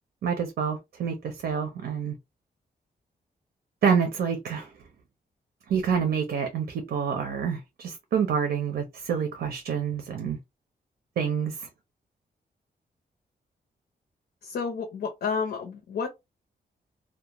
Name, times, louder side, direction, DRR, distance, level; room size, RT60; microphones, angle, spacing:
voice 1, 0.2-2.1 3.8-4.7 5.7-10.4 11.2-11.7, right 7 dB, 90° right, 0.5 m, -27 dB
voice 2, 14.4-16.1, left 5 dB, 75° left, 0.6 m, -30 dB
2.4 x 2.1 x 2.9 m
wide cardioid pair, 165°, 17 cm